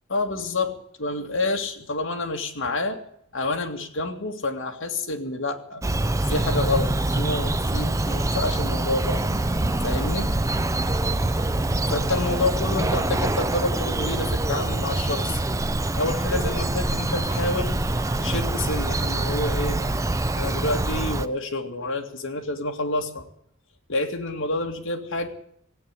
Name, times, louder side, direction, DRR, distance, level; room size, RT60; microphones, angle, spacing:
voice 1, 0.1-3.0 3.3-5.8 6.3-9.2 9.8-10.3 11.9-15.4 16.0-17.8 18.2-19.8 20.3-23.2 23.9-25.3, left 2 dB, 60° left, 3 dB, 2.2 m, -28 dB
Bird vocalization bird call bird song, 5.8-21.3, right 2 dB, 15° right, 0.5 m, -25 dB
16.5 x 8.9 x 9.8 m, 0.68 s
head